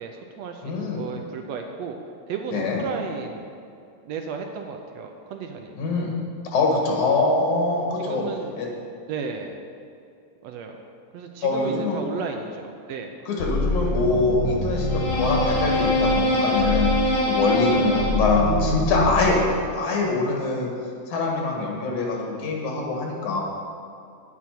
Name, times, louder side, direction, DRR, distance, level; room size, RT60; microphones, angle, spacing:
voice 1, 0.0-2.0 2.3-3.5 4.1-5.7 8.0-8.6 9.1-9.6 10.4-10.8 11.1-13.1, right 5 dB, 75° right, 4 dB, 1.7 m, -34 dB
voice 2, 0.6-1.0 2.5-2.8 5.7-6.1 6.4-8.2 8.6-8.7 11.4-12.0 13.3-19.4 19.7-20.7 21.1-23.4, left 3 dB, 80° left, -1 dB, 3.2 m, -24 dB
sound 1, 13.4-19.6, left 1 dB, 60° left, 3.5 m, -23 dB
9.6 x 8.3 x 5.9 m, 2.5 s
omnidirectional pair, 3.4 m